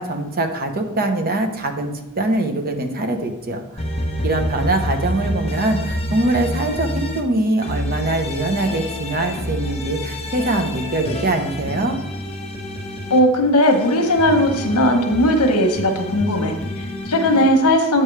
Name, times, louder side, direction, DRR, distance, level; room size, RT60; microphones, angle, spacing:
voice 1, 0.0-3.8 4.2-12.0, right 2 dB, 45° right, 5 dB, 0.9 m, -23 dB
sound 1, 3.8-7.2 7.6-13.2 13.6-17.5, left 1 dB, 25° left, 1.1 m, -28 dB
voice 2, 13.1-18.0, left 1 dB, 80° left, 4 dB, 1.2 m, -17 dB
8.7 x 6.6 x 3.3 m, 0.92 s
head